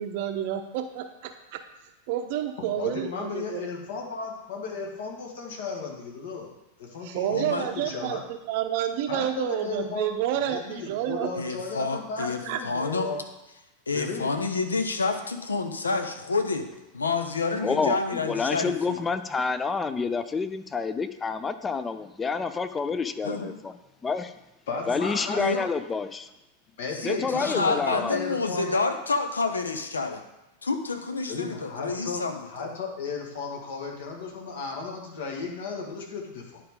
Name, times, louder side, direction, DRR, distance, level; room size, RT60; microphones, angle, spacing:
voice 1, 0.0-1.6 2.1-3.7 7.0-8.2 8.5-11.3 12.5-12.6, right 10 dB, 50° right, 7 dB, 0.7 m, -29 dB
voice 2, 2.6-6.5 6.8-8.2 9.1-10.1 10.4-13.2 13.9-14.3 24.7-25.7 26.8-28.8 31.3-36.6, left 4 dB, 55° left, 0 dB, 1.7 m, -35 dB
voice 3, 7.3-7.7 11.3-13.1 13.9-19.0 23.2-23.5 25.4-25.6 27.1-30.2 30.6-32.7, left 3 dB, 75° left, 6 dB, 0.8 m, -29 dB
voice 4, 17.5-23.7 24.0-24.3 24.9-26.3 27.0-28.2, left 4 dB, 15° left, 11 dB, 0.5 m, -28 dB
10.0 x 4.9 x 3.7 m, 0.98 s
figure-of-eight pair, 90°, 0 cm